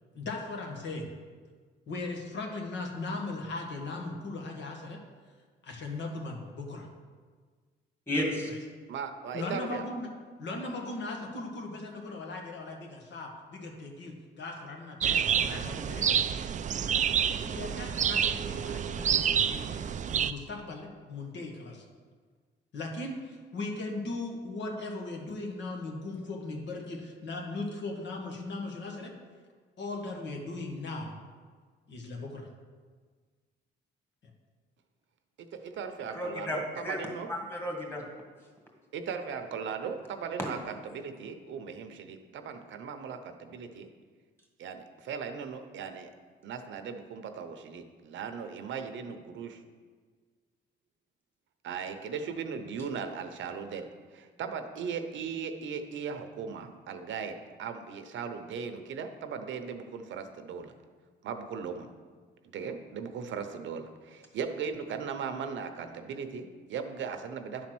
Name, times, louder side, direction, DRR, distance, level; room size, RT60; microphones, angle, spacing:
voice 1, 0.1-1.1 1.9-5.0 5.6-6.9 8.4-8.6 9.3-10.1 10.4-16.2 16.8-16.9 17.3-19.8 20.2-21.8 22.7-29.1 29.8-31.1 31.9-32.5, left 2 dB, 65° left, 1 dB, 1.7 m, -38 dB
voice 2, 8.1-8.5 36.1-38.0, left 1 dB, 10° left, 0 dB, 2.1 m, -33 dB
voice 3, 8.9-9.9 35.4-37.3 38.9-43.9 44.6-46.1 46.4-49.5 51.6-53.9 54.1-60.7 61.2-61.9 62.5-67.7, right 6 dB, 70° right, 7 dB, 0.8 m, -38 dB
sound 1, 15.0-20.3, right 8 dB, 40° right, 0.4 m, -28 dB
10.5 x 4.2 x 6.1 m, 1.5 s
cardioid pair, 90°, 20 cm